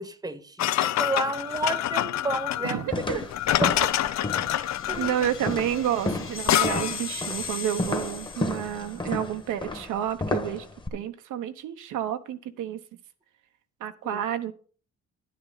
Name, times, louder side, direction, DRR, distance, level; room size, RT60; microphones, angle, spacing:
voice 1, 0.0-2.8 3.1-3.2 3.6-3.9 4.4-5.1 14.0-14.2, right 2 dB, 10° right, 1.1 m, -32 dB
sound 1, 0.6-7.1, left 13 dB, 60° left, 0.6 m, -26 dB
voice 2, 2.6-3.2 5.0-10.7 10.9-12.8 13.8-14.5, right 10 dB, 80° right, 1.0 m, -30 dB
sound 2, 2.9-10.9, left 2 dB, 15° left, 1.4 m, -33 dB
sound 3, 3.2-9.2, left 5 dB, 45° left, 1.8 m, -40 dB
10.5 x 9.5 x 4.0 m
cardioid pair, 90°, 30 cm